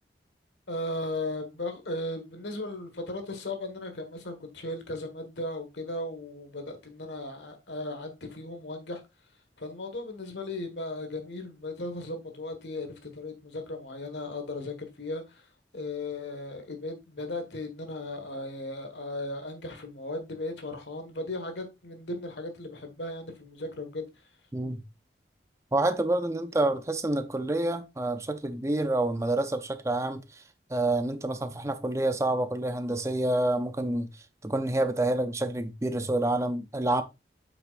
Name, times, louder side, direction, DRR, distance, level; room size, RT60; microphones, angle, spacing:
voice 1, 0.7-9.0 9.6-15.4 15.7-24.1, left 2 dB, 85° left, 1.5 m, -36 dB
voice 2, 24.5-24.8 25.7-30.4 30.7-34.1 34.4-37.0, right 2 dB, 15° right, 0.5 m, -28 dB
7.8 x 5.9 x 2.5 m
head